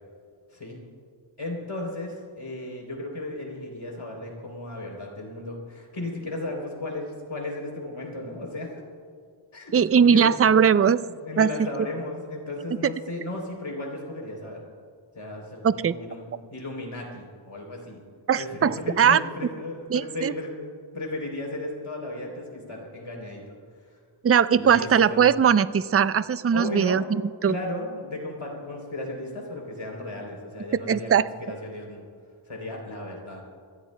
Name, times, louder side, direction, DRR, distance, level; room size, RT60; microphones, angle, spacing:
voice 1, 1.4-8.7 9.5-10.4 10.8-11.0 11.2-14.6 15.1-16.2 16.5-18.0 18.4-23.5 24.6-25.3 26.5-27.0 27.4-32.0 32.5-33.4, left 1 dB, 85° left, 0 dB, 3.5 m, -35 dB
voice 2, 9.7-11.0 11.4-11.5 15.6-16.0 18.3-19.2 19.9-20.3 24.2-27.5 30.9-31.2, right 7 dB, 30° right, 15 dB, 0.4 m, -20 dB
25.5 x 15.5 x 2.2 m, 2.1 s
wide cardioid pair, 50°, 48 cm